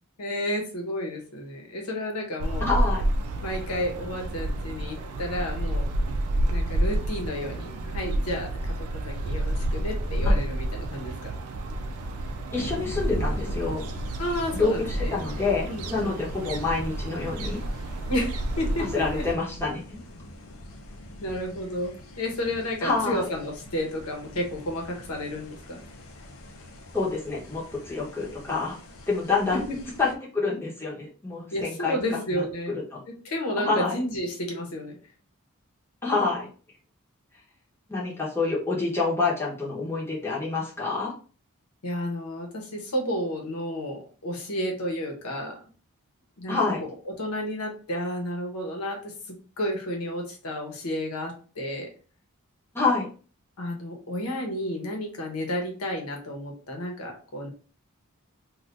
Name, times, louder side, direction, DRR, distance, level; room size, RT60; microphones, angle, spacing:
voice 1, 0.2-2.7 3.4-5.8 6.5-8.5 8.8-11.3 14.2-15.2 15.7-16.2 18.1-19.3 21.2-25.8 29.5-29.8 31.5-32.7 33.2-35.0 41.8-45.5 46.4-51.9 53.6-57.5, left 1 dB, 85° left, 1 dB, 1.0 m, -31 dB
sound 1, 2.4-19.3, right 1 dB, 85° right, 0.4 m, -29 dB
voice 2, 2.6-3.0 12.5-13.8 14.6-17.6 18.9-20.0 22.8-23.2 26.9-28.8 29.1-29.6 30.0-31.9 32.3-32.4 32.7-33.0 33.6-34.0 36.0-36.5 37.9-41.1 46.5-46.8 52.7-53.1, left 3 dB, 10° left, -6 dB, 0.9 m, -27 dB
sound 2, 12.6-30.1, left 1 dB, 70° left, 0.6 m, -43 dB
2.6 x 2.4 x 3.3 m, 0.38 s
head